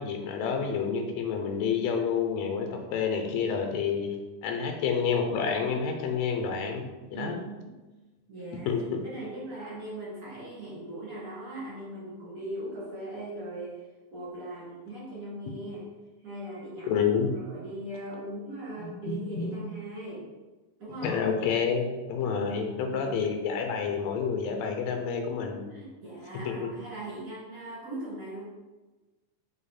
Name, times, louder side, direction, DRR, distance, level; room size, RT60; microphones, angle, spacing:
voice 1, 0.0-4.2 4.4-7.4 8.7-9.0 16.9-17.3 18.8-19.5 21.0-25.7 26.5-26.7, left 6 dB, 70° left, 4 dB, 1.8 m, -29 dB
voice 2, 7.1-7.7 8.3-15.9 16.2-17.0 17.3-20.3 20.8-21.2 22.2-23.0 25.7-28.4, right 1 dB, 35° right, -7 dB, 2.2 m, -39 dB
5.5 x 4.4 x 4.3 m, 1.2 s
omnidirectional pair, 3.6 m